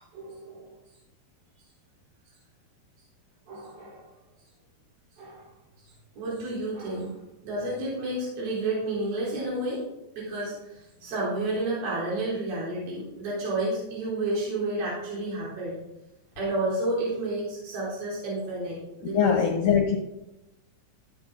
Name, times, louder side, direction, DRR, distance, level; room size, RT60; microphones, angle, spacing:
voice 1, 0.1-0.7 3.5-4.0 5.2-5.5 6.2-9.8 10.2-15.7 16.4-19.4, right 2 dB, 70° right, -6 dB, 5.8 m, -31 dB
voice 2, 19.1-20.0, left 7 dB, 65° left, 1 dB, 2.2 m, -22 dB
15.0 x 9.7 x 3.9 m, 0.90 s
omnidirectional pair, 4.7 m